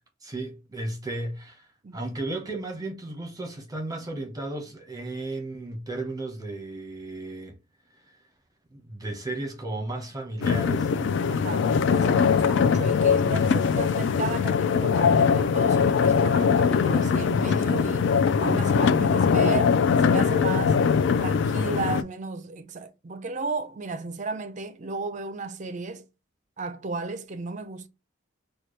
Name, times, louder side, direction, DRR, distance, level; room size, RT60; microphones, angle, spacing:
voice 1, 0.2-7.5 7.9-8.2 8.7-11.2, right 2 dB, 20° right, 1.0 m, -34 dB
sound 1, 10.4-22.0, left 6 dB, 65° left, 0.3 m, -22 dB
voice 2, 11.3-18.1 18.4-20.8 21.2-26.1 26.6-27.9, right 3 dB, 40° right, 0.5 m, -34 dB
4.3 x 2.3 x 3.1 m
head